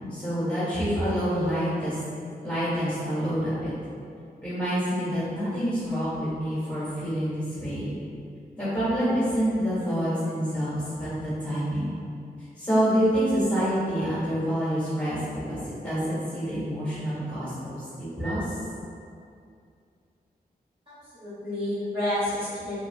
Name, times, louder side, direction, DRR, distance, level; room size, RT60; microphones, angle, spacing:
voice 1, 0.1-2.0 2.4-3.7 4.4-7.9 8.6-11.9 12.6-15.2 15.5-18.6, equal, 10° left, -12 dB, 1.4 m, -27 dB
voice 2, 20.9-22.8, left 1 dB, 35° right, -14 dB, 1.1 m, -30 dB
3.2 x 2.6 x 2.3 m, 2.4 s
wide cardioid pair, 150°, 16 cm